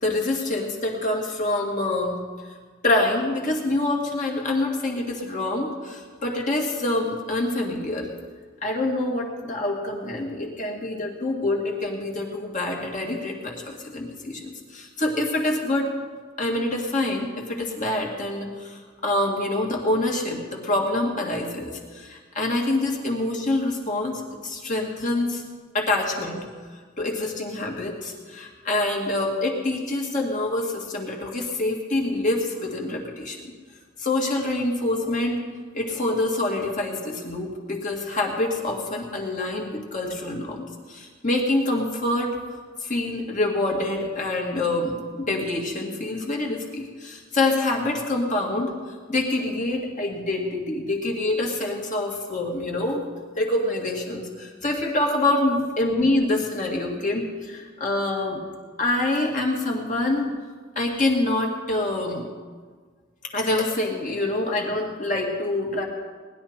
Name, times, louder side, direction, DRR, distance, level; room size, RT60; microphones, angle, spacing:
voice 1, 0.0-2.2 2.8-8.1 8.6-15.9 16.4-25.4 25.7-26.5 27.0-33.4 34.0-35.4 35.7-42.4 42.8-48.7 49.1-53.0 53.4-58.4 58.8-60.3 60.8-62.3 63.3-65.8, left 2 dB, 40° left, 0 dB, 2.2 m, -26 dB
19.5 x 11.5 x 4.4 m, 1.5 s
head